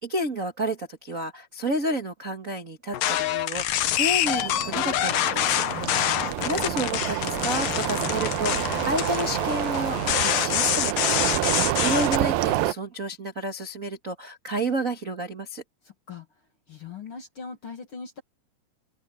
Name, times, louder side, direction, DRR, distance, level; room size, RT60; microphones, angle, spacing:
voice 1, 0.0-5.6 6.0-15.6, right 1 dB, 65° right, 0.8 m, -31 dB
sound 1, 2.9-12.2, left 12 dB, 70° left, 2.2 m, -26 dB
sound 2, 4.0-12.1, left 6 dB, 85° left, 5.8 m, -49 dB
sound 3, 4.3-12.7, right 15 dB, 80° right, 2.2 m, -28 dB
voice 2, 5.7-6.3 15.8-16.3 16.7-18.2, left 6 dB, 45° left, 2.0 m, -40 dB
open air
omnidirectional pair, 4.9 m